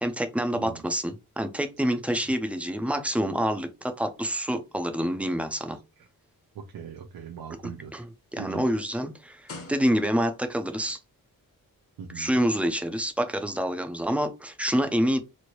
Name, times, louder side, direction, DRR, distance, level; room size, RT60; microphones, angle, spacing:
voice 1, 0.0-5.8 7.9-11.0 12.2-15.2, equal, 5° right, 0.4 m, -27 dB
voice 2, 0.5-0.9 6.0-6.1 6.5-8.1 8.4-8.7 12.0-12.3, right 7 dB, 90° right, 0.6 m, -41 dB
sound 1, 7.3-10.4 11.3-11.4, left 3 dB, 40° left, 0.8 m, -47 dB
3.1 x 2.5 x 2.9 m
wide cardioid pair, 175°, 35 cm